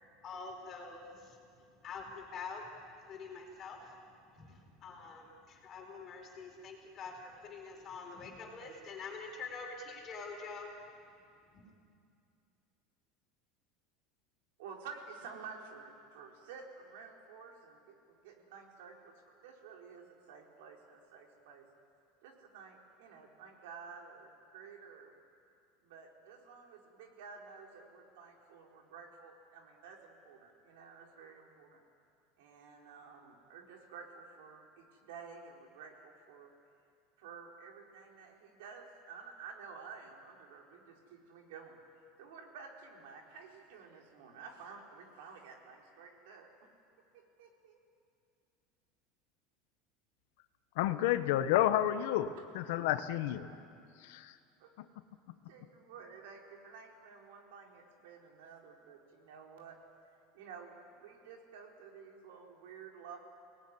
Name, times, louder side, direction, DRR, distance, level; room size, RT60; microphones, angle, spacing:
voice 1, 0.2-1.3 1.8-2.6 3.1-3.9 4.4-10.7 11.5-11.7, left 4 dB, 25° left, 1 dB, 4.4 m, -46 dB
voice 2, 14.6-21.6 22.2-25.1 25.8-31.8 32.4-36.5 37.2-41.8 42.2-46.5 47.1-47.8 52.4-52.5 53.5-53.6 54.6-54.7 55.5-59.8 60.3-63.2, right 5 dB, 85° right, 1 dB, 4.4 m, -52 dB
voice 3, 50.8-53.5 54.0-54.3, left 12 dB, 70° left, 10 dB, 1.2 m, -30 dB
29.5 x 19.0 x 9.9 m, 2.4 s
cardioid pair, 175°, 0 cm